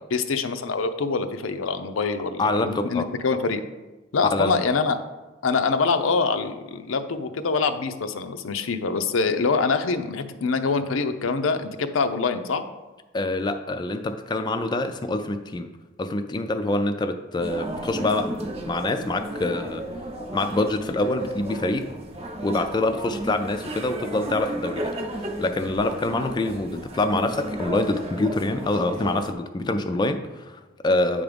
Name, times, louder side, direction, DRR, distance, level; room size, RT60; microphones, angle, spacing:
voice 1, 0.0-3.6 4.1-5.0 5.4-12.6, left 4 dB, 85° left, 8 dB, 0.6 m, -25 dB
voice 2, 2.4-3.1 4.3-4.6 13.1-15.7 16.0-19.9 20.3-21.9 22.4-31.2, left 2 dB, 20° left, 7 dB, 0.3 m, -26 dB
sound 1, 17.4-29.3, right 1 dB, 30° right, 0.7 m, -34 dB
8.5 x 3.5 x 5.2 m, 1.1 s
head